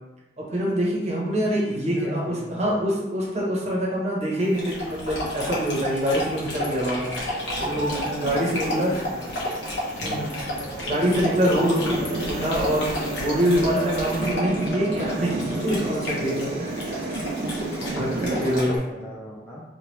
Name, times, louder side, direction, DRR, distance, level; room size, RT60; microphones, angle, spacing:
voice 1, 0.4-7.1 7.4-8.9 10.0-10.4 10.8-17.6 18.0-18.8, equal, 40° right, -4 dB, 0.8 m, -25 dB
voice 2, 1.7-2.8 7.5-9.4 10.0-10.5 11.6-12.3 17.6-19.6, equal, 10° left, -6 dB, 0.4 m, -37 dB
sound 1, 4.4-18.6, right 2 dB, 55° right, 0.4 m, -33 dB
Dog, 4.5-18.8, left 1 dB, 80° left, 0.9 m, -32 dB
3.2 x 2.2 x 3.0 m, 1.0 s
head